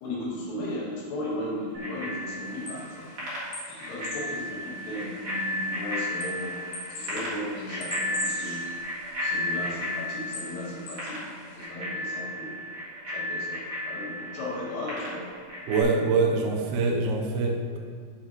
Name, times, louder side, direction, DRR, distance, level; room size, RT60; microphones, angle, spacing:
voice 1, 0.0-3.1 3.4-6.6 6.9-8.7 9.2-11.2 11.5-12.6 13.1-15.3, left 1 dB, 85° left, -6 dB, 4.7 m, -36 dB
Bicycle bell, 1.7-15.8, left 1 dB, 40° right, 1.8 m, -34 dB
sound 1, 2.5-11.7, left 2 dB, 60° left, 3.1 m, -43 dB
voice 2, 15.7-17.8, right 3 dB, 80° right, 0 dB, 2.3 m, -24 dB
12.5 x 6.2 x 3.0 m, 2.1 s
omnidirectional pair, 5.6 m